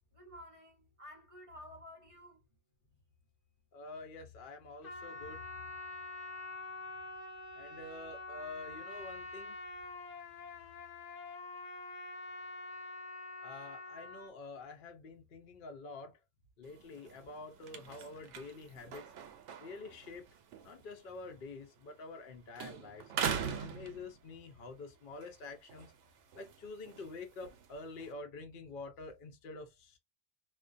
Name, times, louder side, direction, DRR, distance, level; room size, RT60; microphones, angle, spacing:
voice 1, 0.0-2.6, equal, 35° right, 0.6 m, -53 dB
voice 2, 3.7-5.4 7.5-9.6 13.4-16.2 16.6-19.1 19.6-20.3 20.6-25.9 26.3-30.0, left 3 dB, 55° left, 0.6 m, -47 dB
Trumpet, 4.8-14.3, left 2 dB, 85° left, 1.1 m, -46 dB
sound 1, 16.6-22.3 22.5-24.6 25.0-28.1, right 7 dB, 80° right, 0.9 m, -43 dB
2.3 x 2.2 x 2.4 m
omnidirectional pair, 1.2 m